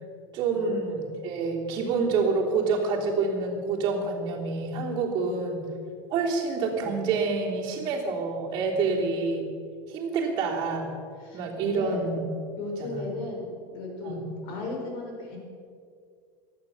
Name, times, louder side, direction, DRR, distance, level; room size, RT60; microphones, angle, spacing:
voice 1, 0.3-5.6 6.1-9.4 9.9-10.9 11.3-12.2 12.8-13.0 14.0-14.3, right 4 dB, 35° right, -5 dB, 3.4 m, -27 dB
voice 2, 11.2-12.0 12.6-14.2 14.4-15.4, left 2 dB, 45° left, 1 dB, 5.0 m, -36 dB
16.5 x 12.0 x 7.2 m, 2.2 s
supercardioid pair, 165°, 12 cm